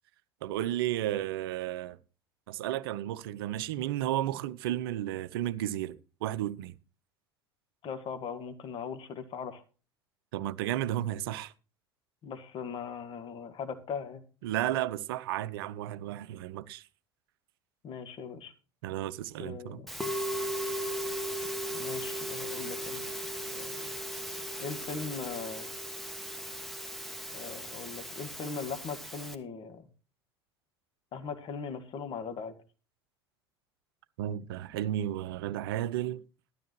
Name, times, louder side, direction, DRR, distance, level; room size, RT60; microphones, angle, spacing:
voice 1, 0.4-2.0 2.5-5.9 6.2-6.7 10.3-11.5 14.4-16.8 18.8-19.8 34.2-36.2, right 13 dB, 60° right, 0.7 m, -33 dB
voice 2, 7.8-9.6 12.2-14.2 17.8-18.5 19.4-20.0 21.7-23.0 23.5-24.0 24.6-25.7 27.3-29.9 31.1-32.5, left 5 dB, 40° left, 1.7 m, -39 dB
Musical instrument, 19.9-29.3, equal, ahead, 1.3 m, -37 dB
13.0 x 12.5 x 3.1 m
figure-of-eight pair, 70°, 13 cm